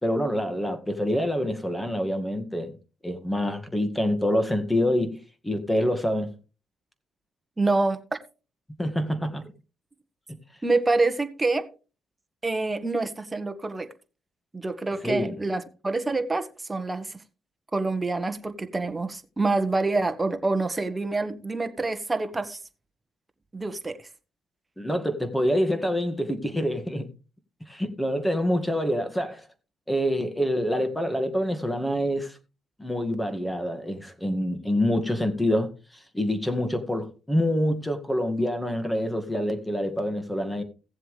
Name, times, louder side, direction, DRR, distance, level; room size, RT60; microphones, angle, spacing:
voice 1, 0.0-2.7 3.0-5.2 5.4-6.3 8.8-9.4 15.0-15.3 24.8-27.1 27.7-29.5 29.9-32.4 32.8-40.6, equal, 10° left, 2.0 m, -26 dB
voice 2, 7.6-8.0 10.6-11.7 12.4-13.9 14.5-17.2 17.7-22.6 23.5-24.1, right 3 dB, 20° right, 1.5 m, -26 dB
16.5 x 7.5 x 3.3 m
cardioid pair, 90°, 0 cm